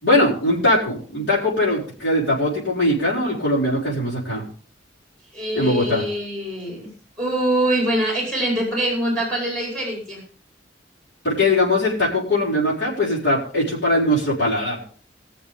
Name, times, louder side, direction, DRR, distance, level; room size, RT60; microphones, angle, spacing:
voice 1, 0.0-4.5 5.5-6.0 11.2-14.8, left 1 dB, 85° left, -7 dB, 5.8 m, -20 dB
voice 2, 5.3-6.9 7.2-10.2, right 1 dB, 5° left, -1 dB, 5.3 m, -24 dB
21.5 x 7.1 x 5.5 m, 0.43 s
head